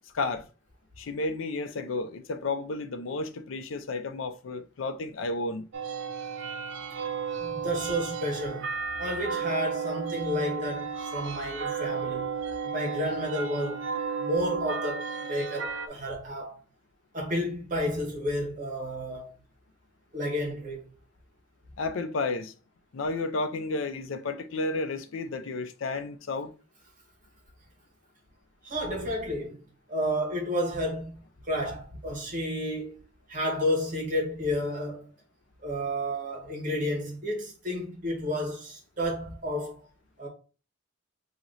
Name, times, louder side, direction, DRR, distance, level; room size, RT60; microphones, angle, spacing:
voice 1, 0.1-0.5 1.0-5.7 21.8-22.5 22.9-26.5, left 3 dB, 80° left, 0.5 m, -32 dB
sound 1, 5.7-15.9, right 5 dB, 70° right, 0.5 m, -33 dB
voice 2, 7.4-8.7 9.0-12.3 12.7-13.8 14.2-16.6 17.1-19.3 20.1-20.8 28.6-29.6 29.9-31.1 31.4-33.0 33.3-35.1 35.6-39.9 40.2-40.3, equal, 40° right, 1.4 m, -31 dB
3.0 x 2.9 x 3.9 m
head